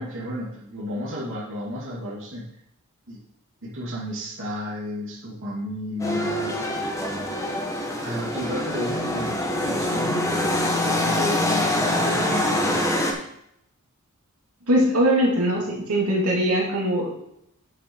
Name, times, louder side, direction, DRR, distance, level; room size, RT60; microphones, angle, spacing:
voice 1, 0.0-2.5 3.1-3.2 3.6-6.6 8.0-12.9, left 1 dB, 60° right, -6 dB, 2.6 m, -33 dB
sound 1, 6.0-13.1, left 1 dB, 15° left, 1.4 m, -24 dB
voice 2, 14.7-17.1, equal, 80° right, -3 dB, 2.8 m, -21 dB
9.3 x 6.8 x 4.7 m, 0.76 s
head